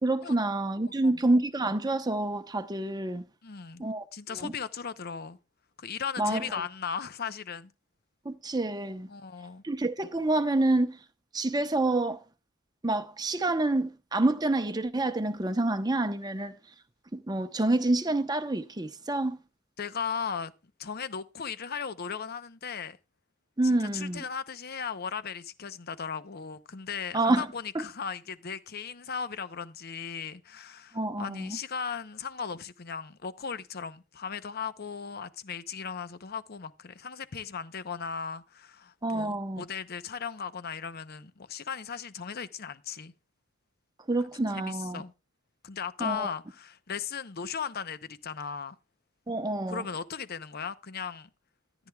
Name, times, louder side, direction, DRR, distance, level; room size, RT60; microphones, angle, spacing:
voice 1, 0.0-3.2 3.8-4.0 4.4-4.5 6.2-6.4 8.2-9.1 9.6-11.0 11.3-12.2 12.8-16.6 17.1-19.4 23.6-24.2 27.1-27.5 27.7-27.8 30.9-31.6 39.0-39.6 44.1-45.0 46.0-46.3 49.3-49.8, right 2 dB, 20° right, 0.8 m, -27 dB
voice 2, 0.8-1.2 3.4-3.8 4.1-5.4 5.8-7.7 9.1-9.6 19.8-20.5 20.8-23.0 23.6-43.1 44.5-45.1 45.6-48.8 49.7-51.3, left 6 dB, 50° left, 0.7 m, -37 dB
14.0 x 9.9 x 2.3 m
head